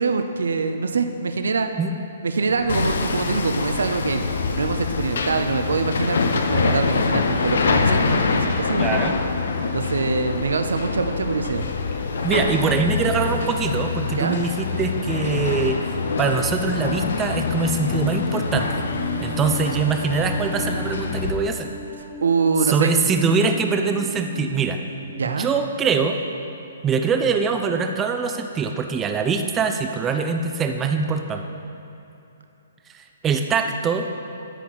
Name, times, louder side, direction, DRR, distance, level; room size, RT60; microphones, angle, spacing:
voice 1, 0.0-1.7 2.2-4.2 4.5-8.9 9.7-11.6 14.1-14.4 22.0-23.0 25.2-25.5, right 4 dB, 80° right, 7 dB, 0.6 m, -24 dB
sound 1, 2.5-18.6, left 3 dB, 45° left, 1.0 m, -41 dB
Hammer, 2.7-21.3, left 4 dB, 75° left, 0.6 m, -25 dB
voice 2, 8.8-9.2 12.2-15.8 16.2-18.8 19.2-21.7 22.7-24.8 25.3-26.2 26.8-31.4 32.9-34.1, right 5 dB, 15° right, 5 dB, 0.5 m, -23 dB
sound 2, 17.9-26.3 26.6-26.7, right 1 dB, 15° left, 0.8 m, -40 dB
13.0 x 4.6 x 4.0 m, 2.8 s
hypercardioid pair, 145°, 0 cm